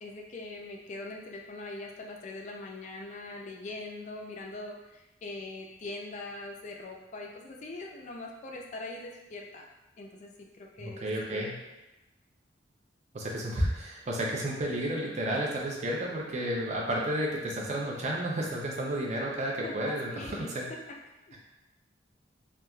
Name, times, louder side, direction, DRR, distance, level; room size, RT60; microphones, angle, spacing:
voice 1, 0.0-9.7 10.0-11.5 19.6-21.0 21.3-21.4, left 2 dB, 40° left, 1 dB, 0.3 m, -42 dB
voice 2, 10.8-11.6 13.1-20.7, right 1 dB, 40° right, -2 dB, 0.5 m, -32 dB
3.1 x 2.3 x 2.2 m, 1.0 s
head